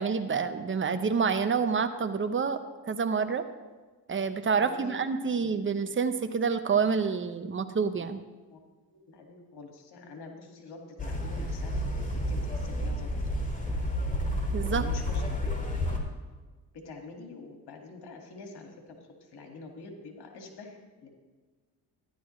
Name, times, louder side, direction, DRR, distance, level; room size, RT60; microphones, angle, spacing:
voice 1, 0.0-2.6 2.9-3.4 4.1-8.2 14.5-14.9, right 5 dB, 30° right, 9 dB, 0.9 m, -28 dB
voice 2, 4.5-5.0 5.2-5.6 7.4-7.5 8.5-8.6 8.9-13.2 14.7-15.3 15.7-15.8 16.7-19.0 19.3-21.1, left 3 dB, 75° left, 2 dB, 2.1 m, -46 dB
sound 1, 11.0-16.0, left 1 dB, 20° left, 2.1 m, -30 dB
13.0 x 11.0 x 3.2 m, 1.3 s
supercardioid pair, 65°, 40 cm